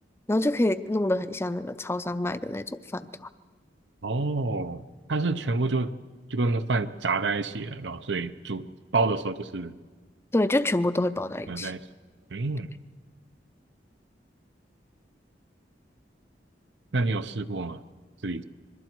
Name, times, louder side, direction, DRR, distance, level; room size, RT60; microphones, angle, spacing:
voice 1, 0.3-3.3 10.3-11.7, left 1 dB, 15° left, 13 dB, 0.5 m, -27 dB
voice 2, 4.0-4.8 5.1-5.9 6.3-8.6 8.9-9.7 11.5-11.8 12.3-12.7 16.9-17.8 18.2-18.4, right 3 dB, 75° right, 11 dB, 0.8 m, -28 dB
26.5 x 21.5 x 4.6 m, 1.5 s
head